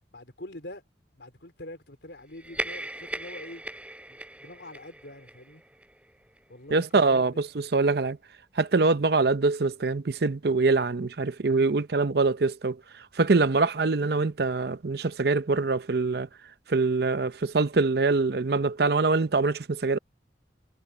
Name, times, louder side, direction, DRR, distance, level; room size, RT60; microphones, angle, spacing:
voice 1, 0.1-0.8 1.1-3.6 4.1-5.6 6.5-6.9 7.1-7.4, left 1 dB, 70° left, 4.6 m, -44 dB
sound 1, 2.3-7.2, right 1 dB, 5° right, 7.1 m, -39 dB
voice 2, 6.7-8.2 8.6-16.3 16.7-20.0, right 3 dB, 60° right, 0.7 m, -24 dB
head